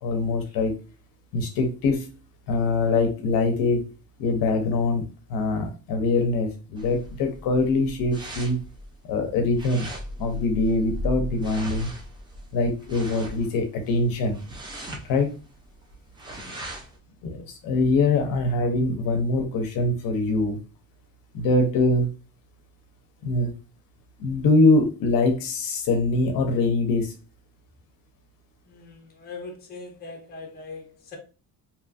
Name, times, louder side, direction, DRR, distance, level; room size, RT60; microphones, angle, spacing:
voice 1, 0.0-0.8 1.3-2.1 2.5-3.9 4.2-8.6 9.0-9.9 10.2-11.9 12.5-14.4 15.0-15.3 17.2-20.6 21.3-22.1 23.2-23.5 24.2-27.1, left 3 dB, 65° left, 0.6 m, -23 dB
sound 1, 6.8-17.0, equal, 15° right, 0.4 m, -37 dB
voice 2, 28.7-31.2, left 3 dB, 25° left, 0.7 m, -41 dB
2.9 x 2.4 x 2.4 m
cardioid pair, 165°, 37 cm